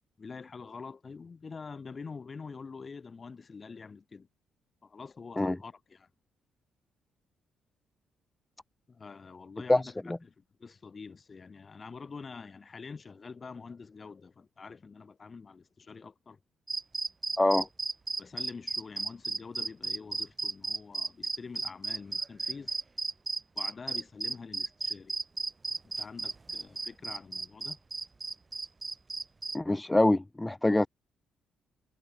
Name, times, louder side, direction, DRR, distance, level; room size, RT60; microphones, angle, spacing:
voice 1, 0.2-4.3 4.8-6.1 8.9-16.4 17.6-17.7 18.2-22.7 23.5-25.1 26.0-27.8, left 5 dB, 35° left, 4.8 m, -46 dB
voice 2, 9.7-10.2 17.4-17.7 29.5-30.9, left 2 dB, 10° left, 0.6 m, -25 dB
sound 1, 16.7-29.6, right 3 dB, 25° right, 0.8 m, -34 dB
cardioid pair, 90°, 0 cm